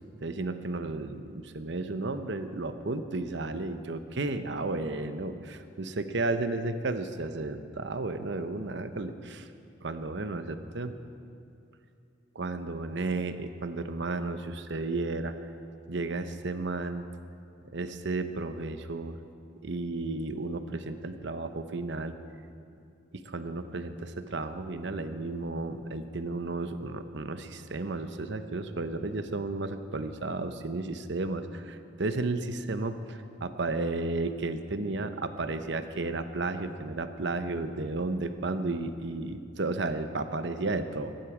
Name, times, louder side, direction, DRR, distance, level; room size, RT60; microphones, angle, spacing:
voice 1, 0.2-9.5 9.8-10.9 12.3-15.3 15.9-17.0 17.7-19.2 19.6-22.1 23.1-41.1, right 2 dB, 60° right, 9 dB, 0.8 m, -33 dB
22.5 x 12.0 x 4.9 m, 2.5 s
head